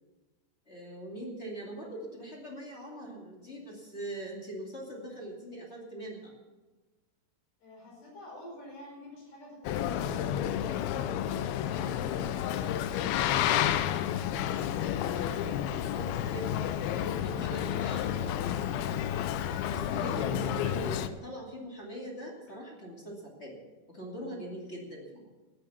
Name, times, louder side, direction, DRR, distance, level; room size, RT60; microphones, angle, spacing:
voice 1, 0.6-6.3 15.6-18.7 19.6-23.6 23.9-25.3, right 1 dB, 25° left, -2 dB, 1.5 m, -42 dB
voice 2, 7.6-12.6 13.0-14.7, left 1 dB, 55° left, -1 dB, 6.7 m, -48 dB
Boat Water vehicle, 9.7-21.1, left 10 dB, 85° left, 3.0 m, -31 dB
13.5 x 10.5 x 7.1 m, 1.2 s
omnidirectional pair, 5.3 m